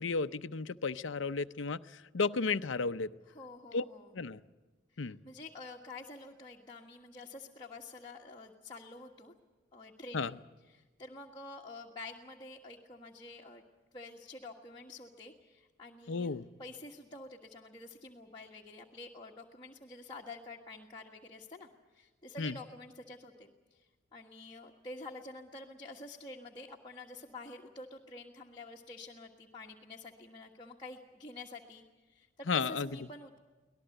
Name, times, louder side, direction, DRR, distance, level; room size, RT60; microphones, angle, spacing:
voice 1, 0.0-3.1 3.7-3.8 4.1-4.4 5.0-5.2 10.1-10.4 16.1-16.5 22.4-22.6 32.5-32.9, left 4 dB, 70° left, 12 dB, 0.7 m, -33 dB
voice 2, 3.3-4.1 4.9-9.3 9.7-10.4 10.7-13.6 13.9-16.3 16.6-23.8 24.1-31.8 32.1-33.4, left 2 dB, 25° left, -3 dB, 1.5 m, -48 dB
24.5 x 18.5 x 7.9 m, 1.3 s
head